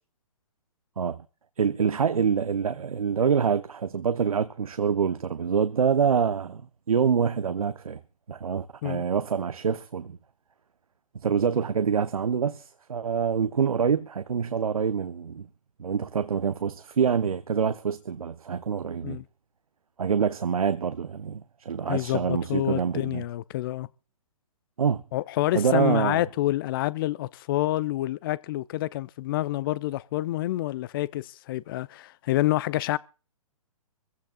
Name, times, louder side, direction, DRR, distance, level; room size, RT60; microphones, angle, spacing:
voice 1, 1.6-6.6 6.9-8.0 8.3-10.2 11.2-15.5 15.8-19.2 20.0-23.2 24.8-25.0 25.5-26.2, right 6 dB, 80° right, 0.8 m, -26 dB
voice 2, 21.9-23.9 25.1-33.0, left 16 dB, 40° left, 0.6 m, -28 dB
24.5 x 15.5 x 2.3 m
hypercardioid pair, 130°, 18 cm